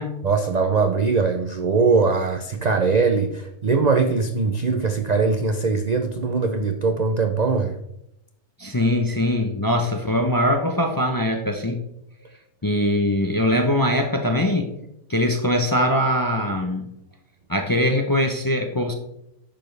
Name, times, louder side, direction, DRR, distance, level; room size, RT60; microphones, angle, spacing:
voice 1, 0.2-7.7, right 4 dB, 60° right, 7 dB, 0.4 m, -21 dB
voice 2, 8.6-11.8 12.6-14.7 15.1-16.9 17.5-18.9, left 1 dB, 25° left, 4 dB, 0.5 m, -22 dB
10.0 x 6.8 x 3.3 m, 0.82 s
omnidirectional pair, 1.5 m